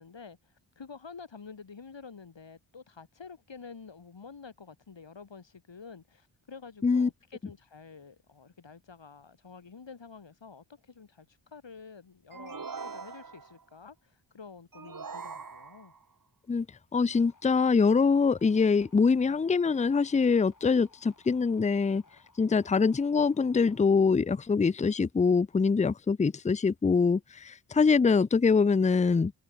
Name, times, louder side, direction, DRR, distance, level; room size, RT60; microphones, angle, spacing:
voice 1, 0.0-15.9, left 5 dB, 65° left, 3.6 m, -49 dB
sound 1, 12.3-13.6 14.7-16.0, right 5 dB, 45° right, 1.7 m, -42 dB
voice 2, 16.9-22.0 22.4-29.3, left 5 dB, 15° left, 0.4 m, -24 dB
sound 2, 17.1-23.9, left 3 dB, 40° left, 6.1 m, -62 dB
cardioid pair, 45°, 48 cm